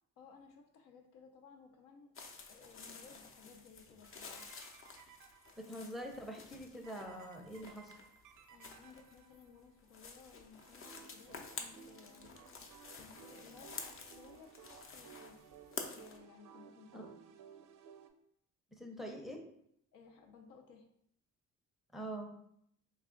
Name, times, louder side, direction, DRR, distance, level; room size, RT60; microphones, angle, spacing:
voice 1, 0.2-4.5 8.5-15.4 15.9-17.3 19.9-20.9, left 5 dB, 85° left, 3 dB, 0.6 m, -59 dB
sound 1, 2.2-16.2, left 4 dB, 45° left, 0.6 m, -50 dB
sound 2, 4.0-6.0 6.8-9.7 10.6-18.1, right 7 dB, 85° right, 0.5 m, -58 dB
voice 2, 5.6-7.9 16.9-17.0 18.7-19.4 21.9-22.3, right 1 dB, ahead, 2 dB, 0.5 m, -44 dB
3.3 x 2.3 x 3.7 m, 0.73 s
cardioid pair, 90°, 30 cm